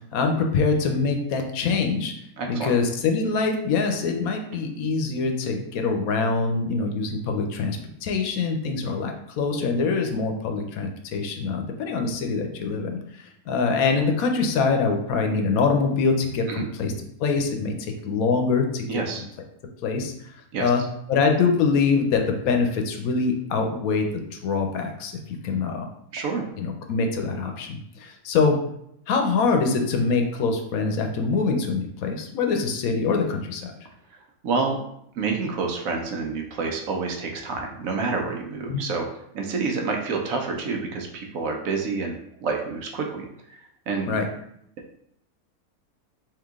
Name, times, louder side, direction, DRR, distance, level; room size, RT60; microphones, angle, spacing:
voice 1, 0.1-2.1 2.5-16.9 17.2-19.0 19.8-20.1 20.6-20.8 21.1-25.9 26.6-28.6 29.1-33.7 38.7-38.8 44.1-44.3, left 4 dB, 80° left, 4 dB, 1.0 m, -24 dB
voice 2, 2.4-2.7 16.5-16.7 18.9-19.2 20.5-20.7 26.1-26.4 34.4-34.8 35.2-39.1 39.3-42.2 42.4-43.6 43.9-44.1, right 4 dB, 70° right, 2 dB, 1.0 m, -28 dB
3.8 x 2.8 x 3.5 m, 0.74 s
omnidirectional pair, 1.5 m